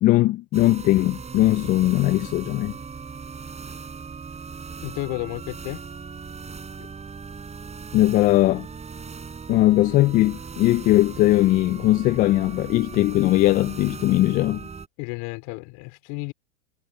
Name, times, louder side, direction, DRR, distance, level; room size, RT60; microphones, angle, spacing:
voice 1, 0.0-2.8 7.9-8.7 9.5-14.6, left 16 dB, 20° left, 0.4 m, -19 dB
sound 1, 0.5-14.9, right 5 dB, 15° right, 4.2 m, -38 dB
voice 2, 4.8-5.8 15.0-16.3, left 28 dB, 50° left, 4.0 m, -32 dB
hypercardioid pair, 110°, 41 cm